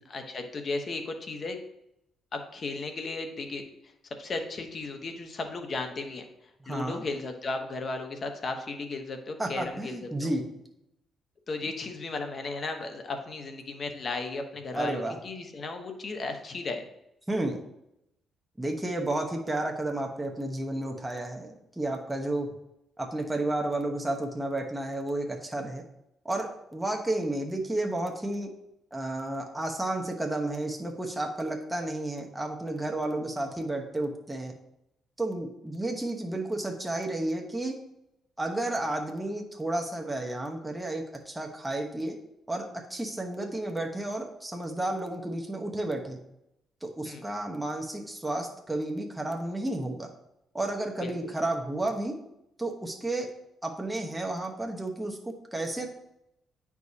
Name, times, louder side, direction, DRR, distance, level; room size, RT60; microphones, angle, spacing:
voice 1, 0.1-1.6 2.3-3.6 4.2-6.3 6.7-10.3 11.5-16.9 47.0-47.2 51.0-51.3, left 3 dB, 45° left, 5 dB, 1.0 m, -35 dB
voice 2, 6.6-7.0 9.4-10.4 14.7-15.2 17.3-17.6 18.6-22.5 23.0-25.8 26.2-28.5 28.9-34.5 35.2-37.8 38.4-42.2 42.5-46.2 46.8-50.1 50.5-52.2 52.6-53.3 53.6-55.9, right 1 dB, 10° right, 1 dB, 1.0 m, -32 dB
9.2 x 4.8 x 2.8 m, 0.81 s
cardioid pair, 90°, 0 cm